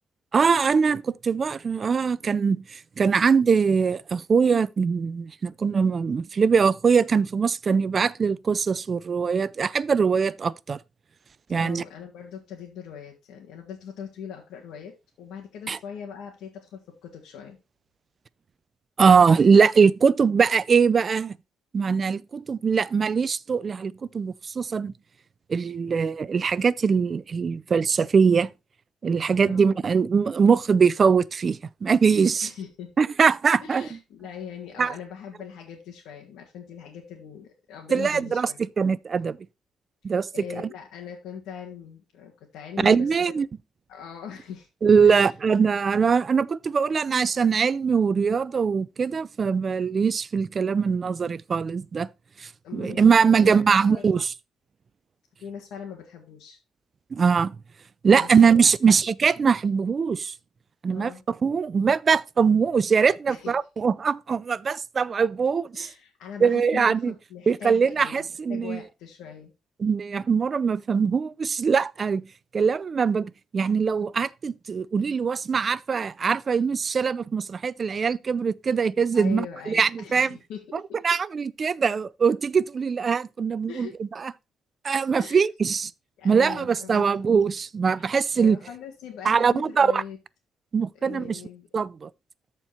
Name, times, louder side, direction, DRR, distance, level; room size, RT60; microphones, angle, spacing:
voice 1, 0.3-10.8 11.5-11.8 15.7-15.8 19.0-21.3 21.7-24.9 25.5-28.5 29.0-32.5 33.0-33.9 34.8-34.9 37.9-38.5 38.8-39.4 40.0-40.3 42.8-43.5 44.8-52.1 52.4-54.3 57.1-57.5 58.0-60.3 60.8-61.1 61.4-65.9 66.4-67.1 67.5-68.8 69.8-72.2 72.5-80.3 81.0-84.3 84.8-85.9 86.2-88.6 89.3-90.0 90.7-91.4 91.7-92.1, right 6 dB, 35° right, 0.4 m, -22 dB
voice 2, 11.5-17.6 29.4-29.8 32.4-32.9 33.6-38.7 40.3-43.3 43.9-44.7 45.0-45.3 52.6-54.2 55.4-56.6 58.1-58.7 60.9-61.2 63.3-63.5 65.7-69.5 79.1-81.0 83.7-84.0 85.2-85.4 86.2-87.1 87.9-90.2 90.9-91.7, left 8 dB, 85° left, 2.0 m, -41 dB
13.5 x 4.5 x 4.1 m
cardioid pair, 140°, 0 cm